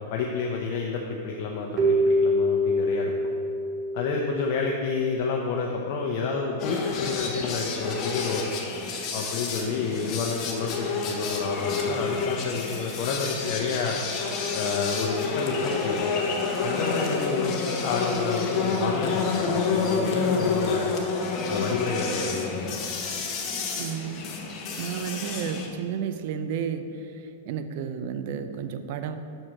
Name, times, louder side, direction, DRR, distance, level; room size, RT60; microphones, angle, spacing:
voice 1, 0.1-3.3 3.9-8.5 9.1-14.0 14.5-16.1 16.6-20.9 21.5-22.6, left 4 dB, 55° left, 0 dB, 0.7 m, -29 dB
Keyboard (musical), 1.8-5.0, left 1 dB, 35° right, 1.0 m, -25 dB
sound 1, 6.6-25.7, left 4 dB, 35° left, 1.0 m, -29 dB
voice 2, 23.8-24.3 24.8-29.2, right 7 dB, 60° right, 9 dB, 0.5 m, -32 dB
6.3 x 4.4 x 6.3 m, 2.7 s
hypercardioid pair, 135°, 0 cm